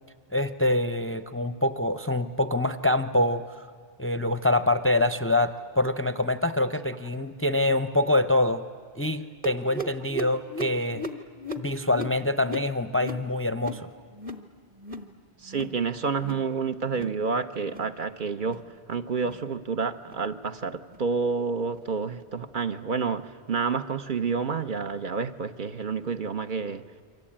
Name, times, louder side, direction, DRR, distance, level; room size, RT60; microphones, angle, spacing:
voice 1, 0.3-3.7 4.0-8.6 9.0-11.0 11.6-13.9, left 1 dB, 15° left, 11 dB, 0.5 m, -25 dB
sound 1, 9.4-14.5 14.7-15.1 15.4-15.8 16.1-16.5 16.8-17.2 17.6-17.9 18.4-18.7 19.2-19.4 20.0-20.2 20.9-21.0 21.7-21.8 22.6-22.7, equal, 35° right, 1.3 m, -38 dB
voice 2, 15.4-18.6 18.9-23.2 23.5-26.8, right 5 dB, 55° right, 8 dB, 1.0 m, -29 dB
28.5 x 24.0 x 8.7 m, 2.1 s
omnidirectional pair, 1.0 m